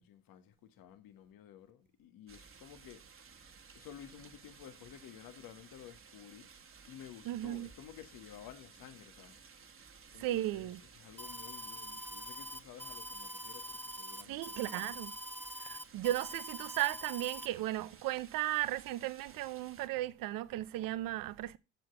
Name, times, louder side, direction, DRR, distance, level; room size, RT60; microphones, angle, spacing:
voice 1, 0.0-3.0 3.7-6.5 6.9-9.4 10.1-14.8, left 10 dB, 60° left, 1.6 m, -53 dB
sound 1, 2.3-19.9, right 5 dB, 35° right, 1.6 m, -57 dB
voice 2, 7.3-7.7 10.2-10.8 14.3-15.1 15.6-21.6, right 15 dB, 60° right, 0.8 m, -36 dB
Alarm, 11.2-17.5, equal, 5° left, 0.6 m, -44 dB
7.6 x 6.1 x 7.8 m
figure-of-eight pair, 50°, 39 cm